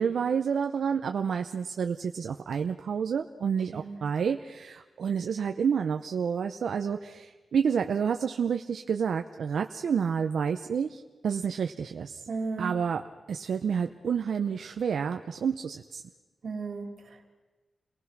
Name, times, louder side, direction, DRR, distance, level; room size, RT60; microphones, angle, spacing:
voice 1, 0.0-12.3 12.6-13.0 13.3-16.0, right 7 dB, 75° right, 6 dB, 0.7 m, -29 dB
voice 2, 12.3-12.7 16.4-17.3, right 4 dB, 55° right, 3 dB, 3.4 m, -35 dB
29.0 x 19.0 x 6.1 m, 1.3 s
wide cardioid pair, 150°, 0 cm